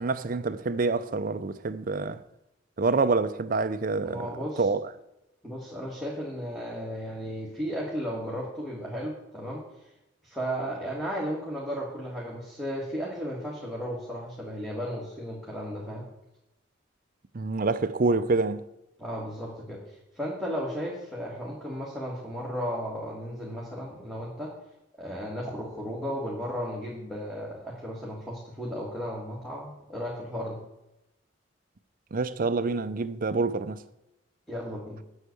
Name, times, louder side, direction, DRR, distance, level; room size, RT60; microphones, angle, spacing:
voice 1, 0.0-2.2 2.8-4.3 4.6-4.9 17.3-18.6 32.1-33.8, right 3 dB, 45° right, 0.5 m, -27 dB
voice 2, 4.0-4.7 5.4-9.6 10.2-16.0 19.0-24.5 25.0-30.6 34.5-35.0, equal, ahead, 1.9 m, -34 dB
8.1 x 6.4 x 8.2 m
head